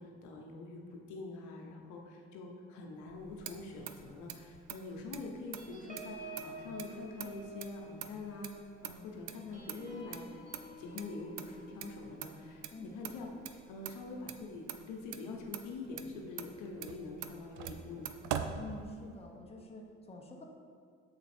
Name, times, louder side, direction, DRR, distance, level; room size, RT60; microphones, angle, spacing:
voice 1, 0.0-10.2 10.8-18.1, left 3 dB, 80° left, 0 dB, 1.0 m, -45 dB
Motor vehicle (road), 3.0-19.3, right 9 dB, 75° right, 0.5 m, -45 dB
sound 1, 5.6-14.5 14.9-15.1 15.4-15.7, right 2 dB, 25° right, 1.4 m, -51 dB
voice 2, 18.6-20.4, left 2 dB, 20° left, 0 dB, 1.0 m, -47 dB
6.9 x 4.0 x 4.3 m, 2.2 s
supercardioid pair, 75°, 29 cm